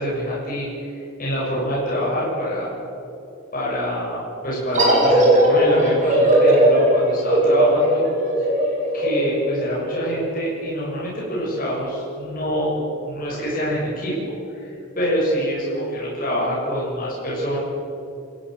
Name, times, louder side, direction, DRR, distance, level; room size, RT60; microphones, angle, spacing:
voice 1, 0.0-2.7 3.5-8.0 8.4-8.5 8.9-14.3 14.6-17.6, equal, 40° left, -6 dB, 7.0 m, -25 dB
sound 1, 4.7-10.0, right 1 dB, 35° right, 5.2 m, -17 dB
28.5 x 15.0 x 8.0 m, 2.8 s
head